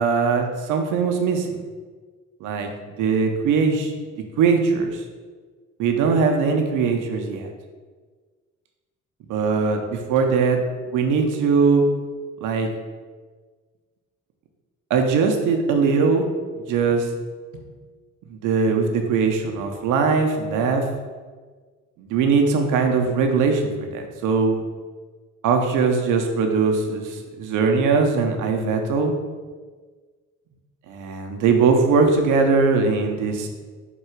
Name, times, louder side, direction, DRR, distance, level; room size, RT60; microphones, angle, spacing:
voice 1, 0.0-1.5 2.4-2.7 3.0-5.0 5.8-7.5 9.3-10.6 10.9-11.9 12.4-12.7 14.9-16.3 16.7-17.1 18.3-20.8 22.0-24.6 25.4-29.1 30.9-33.5, right 5 dB, 85° right, 4 dB, 0.6 m, -20 dB
3.7 x 2.3 x 4.4 m, 1.5 s
cardioid pair, 90°, 30 cm